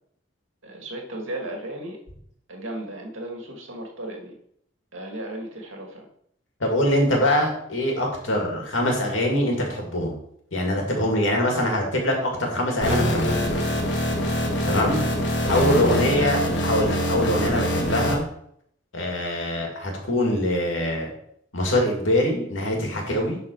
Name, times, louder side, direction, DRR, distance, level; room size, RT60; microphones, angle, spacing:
voice 1, 0.6-2.0 2.5-4.4 4.9-6.1 15.4-16.0, right 1 dB, 80° right, 1 dB, 2.1 m, -34 dB
voice 2, 6.6-10.2 10.5-13.5 14.7-15.0 15.5-18.2 18.9-21.1 21.5-23.4, left 1 dB, 80° left, 0 dB, 2.4 m, -23 dB
sound 1, 12.8-18.2, equal, 60° left, 1.6 m, -24 dB
11.0 x 4.3 x 4.7 m, 0.70 s
head